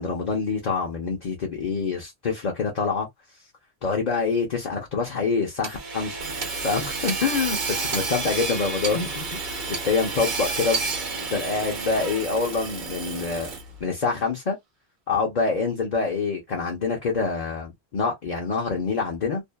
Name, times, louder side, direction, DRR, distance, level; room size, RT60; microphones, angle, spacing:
voice 1, 0.0-3.1 3.8-6.2 6.6-10.8 11.3-13.5 13.8-14.6 15.1-19.4, left 4 dB, 45° left, 0.8 m, -26 dB
Hammer / Sawing, 5.6-13.8, right 4 dB, 50° right, 0.8 m, -30 dB
2.6 x 2.3 x 2.2 m
omnidirectional pair, 1.1 m